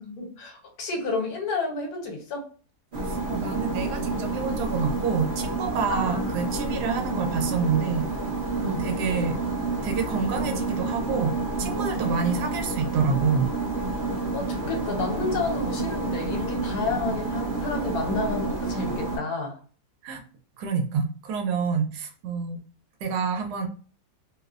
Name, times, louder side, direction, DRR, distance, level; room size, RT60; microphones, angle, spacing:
voice 1, 0.0-2.5 5.9-6.4 8.6-8.9 12.0-12.2 14.3-19.6, left 3 dB, 70° left, 1.2 m, -30 dB
sound 1, 2.9-19.2, right 3 dB, 45° right, 0.7 m, -29 dB
voice 2, 3.1-8.0 8.6-9.4 9.8-13.5 20.0-20.2 20.6-22.6 23.0-23.7, right 5 dB, 85° right, 1.2 m, -27 dB
2.8 x 2.0 x 2.4 m
omnidirectional pair, 1.7 m